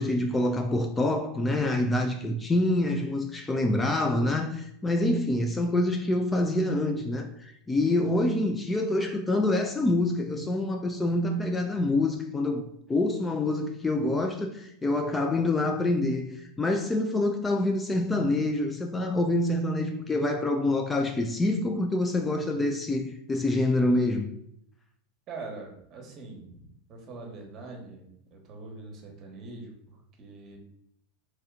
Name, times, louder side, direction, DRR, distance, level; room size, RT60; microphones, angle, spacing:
voice 1, 0.0-24.3, left 2 dB, 15° left, 0.3 m, -26 dB
voice 2, 25.3-30.6, right 3 dB, 40° right, 1.1 m, -43 dB
3.2 x 2.8 x 3.6 m
hypercardioid pair, 110°, 0 cm